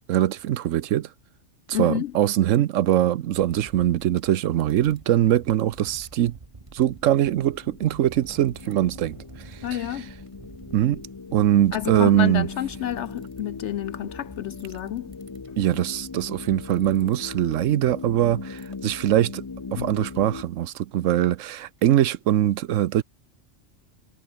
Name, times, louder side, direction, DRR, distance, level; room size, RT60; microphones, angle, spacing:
voice 1, 0.1-1.1 1.7-6.4 6.7-9.2 9.4-9.8 10.7-11.0 11.3-12.5 15.6-19.4 19.7-23.0, right 12 dB, 90° right, 1.1 m, -22 dB
voice 2, 1.7-2.1 9.6-10.1 11.7-15.2 19.8-19.9, left 11 dB, 70° left, 0.9 m, -29 dB
sound 1, 3.1-13.7 14.4-16.4 16.7-17.1 18.6-18.8 19.3-19.6 19.9-20.0 20.2-20.3 20.7-20.8 21.2-21.3 21.8-21.9, right 3 dB, 25° right, 1.5 m, -48 dB
sound 2, 6.6-20.4, left 4 dB, 25° left, 0.5 m, -40 dB
omnidirectional pair, 1.3 m